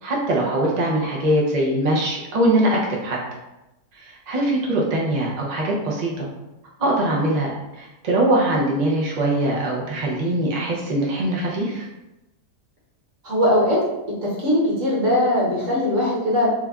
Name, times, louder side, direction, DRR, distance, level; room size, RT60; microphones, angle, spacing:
voice 1, 0.0-3.2 3.9-6.3 6.8-11.9, right 1 dB, 80° right, -3 dB, 0.3 m, -22 dB
voice 2, 13.2-13.8 14.2-16.5, left 1 dB, 55° right, -5 dB, 1.5 m, -20 dB
3.2 x 2.3 x 3.6 m, 0.97 s
omnidirectional pair, 1.7 m